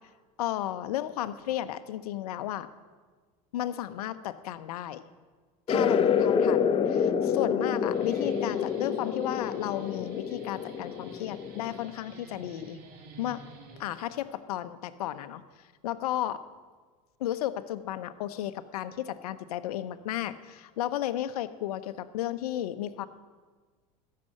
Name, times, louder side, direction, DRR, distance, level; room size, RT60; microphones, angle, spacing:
voice 1, 0.4-2.7 3.5-5.0 5.7-12.8 13.2-13.4 13.8-15.4 15.8-16.4 17.2-23.1, left 12 dB, 85° left, 12 dB, 0.8 m, -33 dB
sound 1, 5.7-11.8, left 7 dB, 30° left, 0.9 m, -27 dB
Guitar, 7.7-14.3, right 3 dB, 60° right, 2.3 m, -50 dB
14.0 x 6.7 x 9.8 m, 1.4 s
hypercardioid pair, 95°, 19 cm